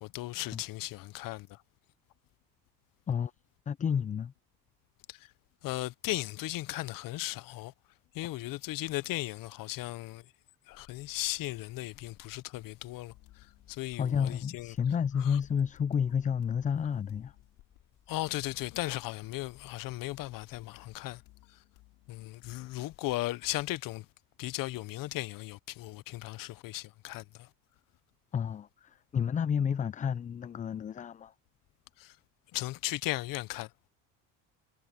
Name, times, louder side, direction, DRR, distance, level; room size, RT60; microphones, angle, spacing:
voice 1, 0.0-1.6 5.1-5.3 5.6-7.7 8.1-10.2 10.7-14.8 15.2-15.4 18.1-21.2 22.1-24.1 24.4-27.5 32.0-32.2 32.5-33.7, left 18 dB, 60° left, 0.7 m, -36 dB
voice 2, 3.7-4.3 14.0-17.3 28.3-31.3, left 7 dB, 20° left, 0.4 m, -30 dB
sound 1, 10.7-20.8, left 9 dB, 45° left, 5.8 m, -64 dB
sound 2, 13.1-23.8, left 20 dB, 85° left, 6.2 m, -61 dB
cardioid pair, 110°, 37 cm